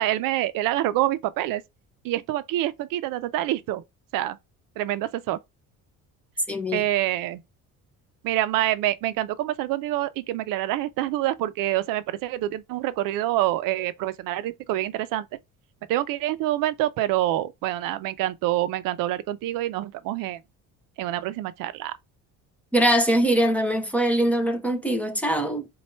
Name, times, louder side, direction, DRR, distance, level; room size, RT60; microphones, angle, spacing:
voice 1, 0.0-1.6 2.0-3.8 4.1-4.4 4.8-5.4 6.7-7.4 8.2-15.3 15.9-20.4 21.0-21.9, right 14 dB, 80° right, 0.5 m, -26 dB
voice 2, 6.5-6.8 22.7-25.7, right 1 dB, 5° left, 0.5 m, -22 dB
4.3 x 2.3 x 4.2 m
cardioid pair, 165°, 33 cm